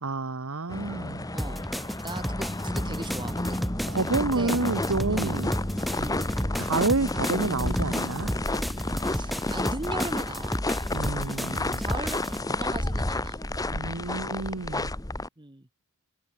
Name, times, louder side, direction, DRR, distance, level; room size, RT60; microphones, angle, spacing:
voice 1, 0.0-1.3 3.9-5.5 6.6-8.3 10.9-11.8 13.7-14.9, right 3 dB, 75° right, 1.4 m, -29 dB
sound 1, 0.7-15.3, left 1 dB, 15° left, 1.4 m, -31 dB
voice 2, 1.3-1.6 2.0-3.6 4.2-4.6 5.1-5.4 6.0-6.2 9.1-10.6 11.8-13.4 15.4-15.7, right 2 dB, 20° right, 1.4 m, -38 dB
sound 2, 1.4-12.4, equal, ahead, 0.6 m, -33 dB
sound 3, 5.4-13.6, left 3 dB, 85° left, 6.2 m, -60 dB
head